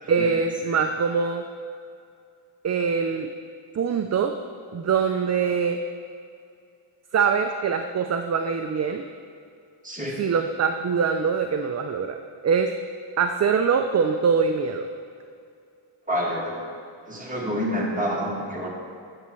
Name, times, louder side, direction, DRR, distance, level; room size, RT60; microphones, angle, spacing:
voice 1, 0.1-1.4 2.6-3.3 3.7-4.3 4.7-5.8 7.1-9.0 10.2-12.7 13.2-14.9, right 6 dB, 35° right, 6 dB, 0.4 m, -23 dB
voice 2, 9.8-10.2 16.1-16.7 17.1-18.7, equal, 15° right, -3 dB, 1.7 m, -28 dB
8.6 x 8.3 x 3.0 m, 2.4 s
cardioid pair, 65°, 49 cm